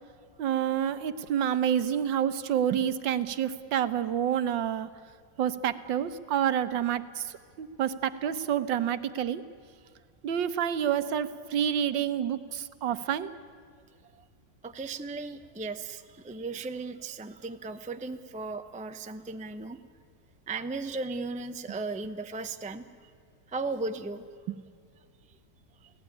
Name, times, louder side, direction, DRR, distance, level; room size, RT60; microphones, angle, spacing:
voice 1, 0.4-4.9 5.4-9.4 10.2-13.3 24.5-24.6, right 9 dB, 85° right, 12 dB, 1.7 m, -28 dB
voice 2, 14.6-19.8 20.5-22.9 23.5-24.2, right 3 dB, 10° right, 9 dB, 0.4 m, -36 dB
30.0 x 17.5 x 9.9 m, 2.2 s
omnidirectional pair, 2.0 m